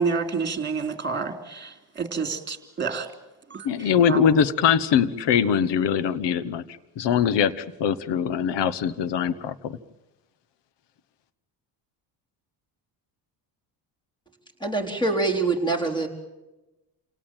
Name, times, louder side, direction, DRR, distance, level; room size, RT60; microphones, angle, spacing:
voice 1, 0.0-3.1 3.5-3.6 4.1-4.2, right 5 dB, 25° right, 6 dB, 3.3 m, -28 dB
voice 2, 3.6-6.6 7.0-9.8, left 8 dB, 65° left, 16 dB, 1.2 m, -22 dB
voice 3, 14.6-16.1, right 3 dB, 10° left, 4 dB, 4.0 m, -24 dB
28.0 x 18.0 x 9.1 m, 1.0 s
cardioid pair, 115°, 46 cm